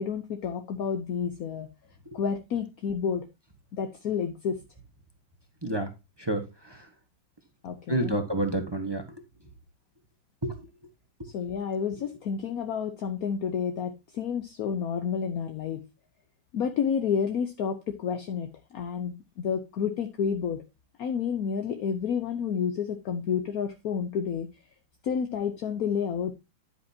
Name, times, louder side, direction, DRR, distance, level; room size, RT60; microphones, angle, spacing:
voice 1, 0.0-1.7 2.1-3.3 3.7-4.6 7.6-8.2 11.3-15.8 16.5-20.6 21.0-24.5 25.0-26.3, left 7 dB, 60° left, 7 dB, 1.0 m, -30 dB
voice 2, 6.2-6.9 7.9-9.0 10.4-10.6, right 1 dB, 15° right, 5 dB, 0.9 m, -29 dB
10.0 x 8.7 x 2.8 m, 0.25 s
omnidirectional pair, 2.3 m